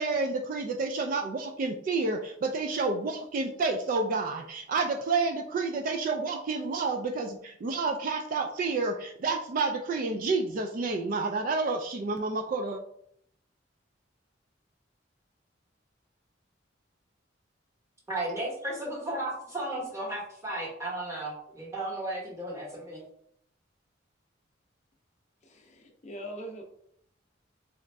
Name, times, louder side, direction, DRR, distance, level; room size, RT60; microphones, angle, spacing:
voice 1, 0.0-12.8, right 3 dB, 45° right, 4 dB, 0.3 m, -29 dB
voice 2, 18.1-23.0, right 1 dB, 15° right, -4 dB, 1.2 m, -34 dB
voice 3, 25.4-26.6, equal, 35° left, 2 dB, 0.5 m, -42 dB
4.0 x 2.5 x 3.3 m, 0.70 s
head